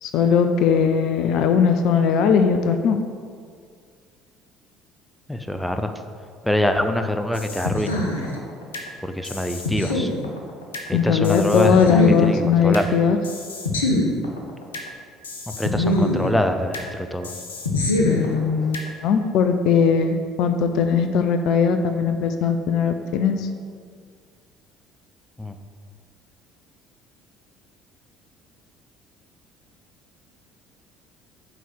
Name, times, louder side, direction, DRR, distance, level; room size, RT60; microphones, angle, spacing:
voice 1, 0.0-3.0 10.9-13.2 18.1-23.5, left 6 dB, 55° left, 8 dB, 0.5 m, -19 dB
voice 2, 5.3-5.9 6.4-8.0 9.0-10.1 10.9-12.9 15.5-17.3 25.4-25.6, left 1 dB, 5° left, 7 dB, 0.6 m, -24 dB
sound 1, 7.3-8.9 9.2-10.9 11.2-12.9 13.2-14.9 15.2-16.9 17.2-18.9, left 1 dB, 75° left, 0.8 m, -25 dB
9.2 x 3.9 x 6.2 m, 2.1 s
figure-of-eight pair, 55°, 0 cm